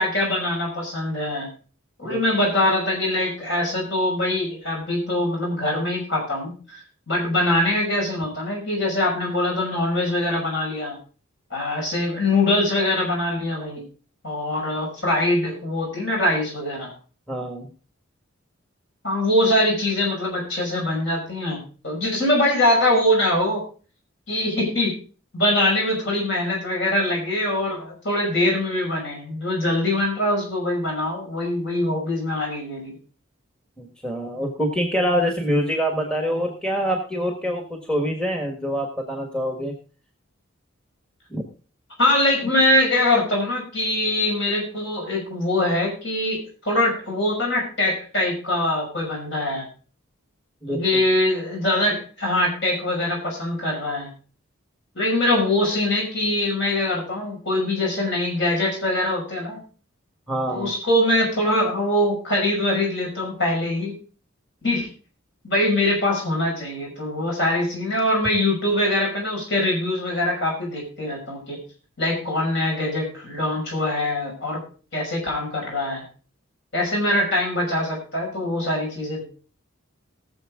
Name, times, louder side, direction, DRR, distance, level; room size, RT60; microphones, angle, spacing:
voice 1, 0.0-1.5 2.0-6.8 7.1-11.0 11.5-13.8 14.2-16.9 19.0-23.6 24.3-24.9 25.3-33.0 42.0-49.6 50.7-54.1 54.9-59.6 60.5-63.9 64.6-64.9 65.4-71.6 72.0-74.6 74.9-76.0 76.7-79.2, left 1 dB, 55° left, 0 dB, 5.9 m, -23 dB
voice 2, 17.3-17.7 33.8-39.7 41.3-41.4 50.6-51.0 60.3-60.7, equal, 5° left, 3 dB, 1.4 m, -25 dB
19.0 x 7.2 x 3.7 m, 0.38 s
head